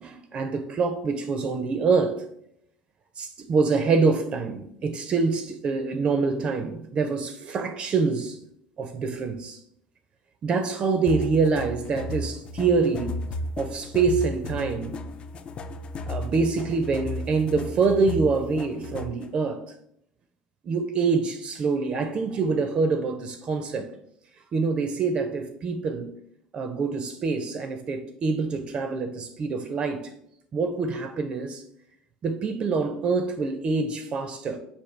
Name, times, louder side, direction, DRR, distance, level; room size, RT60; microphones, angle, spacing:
voice 1, 0.0-2.3 3.2-8.4 8.8-9.6 10.4-13.2 13.6-15.0 16.1-19.7 20.6-23.9 24.5-26.1 26.5-30.1 30.5-31.6 32.2-34.6, right 4 dB, 40° right, 0.4 m, -25 dB
sound 1, 11.1-19.3, left 2 dB, 35° left, 0.3 m, -34 dB
5.0 x 2.6 x 3.2 m
cardioid pair, 120°, 3 cm